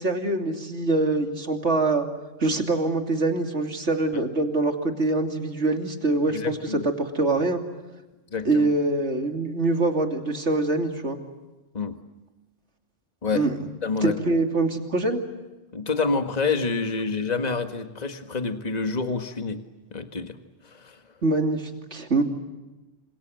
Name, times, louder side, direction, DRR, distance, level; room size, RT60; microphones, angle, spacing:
voice 1, 0.0-2.0 2.4-7.6 8.4-11.2 13.3-13.7 14.0-15.2 21.2-22.2, right 2 dB, 65° right, 5 dB, 3.2 m, -24 dB
voice 2, 6.3-6.8 8.3-8.7 11.7-12.0 13.2-13.5 13.8-14.2 15.7-19.6 19.9-20.4 20.6-21.0, left 4 dB, 35° left, 7 dB, 1.8 m, -27 dB
28.0 x 26.5 x 7.8 m, 1.1 s
omnidirectional pair, 1.3 m